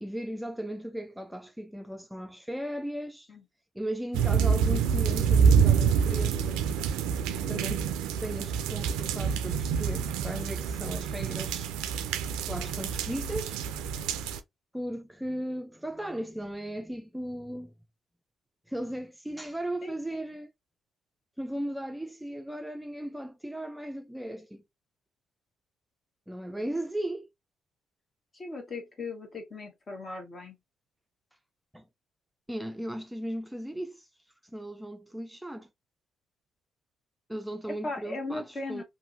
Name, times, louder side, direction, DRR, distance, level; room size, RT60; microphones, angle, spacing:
voice 1, 0.0-3.3 3.7-6.7 7.5-7.9 8.2-11.7 12.4-13.6 14.7-17.7 18.7-20.5 21.4-24.6 26.3-27.3 31.7-31.9 32.5-34.1 34.5-35.7 37.3-38.8, right 1 dB, 5° right, 0.4 m, -36 dB
sound 1, 4.1-14.4, right 7 dB, 90° right, 0.3 m, -27 dB
voice 2, 19.8-20.2 28.3-30.5 37.8-38.8, left 3 dB, 45° left, 1.3 m, -38 dB
2.7 x 2.6 x 2.6 m
supercardioid pair, 65°, 0 cm